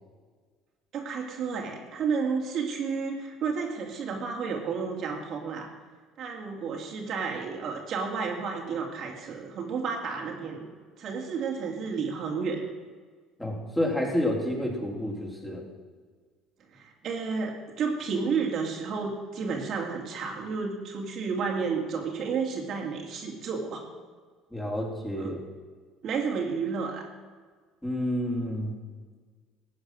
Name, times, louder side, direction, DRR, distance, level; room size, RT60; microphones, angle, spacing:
voice 1, 0.9-5.7 6.2-10.7 11.0-12.6 16.7-23.8 25.2-25.3 26.0-27.1, right 5 dB, 55° right, 1 dB, 2.4 m, -31 dB
voice 2, 13.4-15.6 24.5-25.4 27.8-28.7, left 1 dB, 10° left, -2 dB, 4.1 m, -29 dB
14.5 x 8.5 x 6.3 m, 1.5 s
supercardioid pair, 90°, 0 cm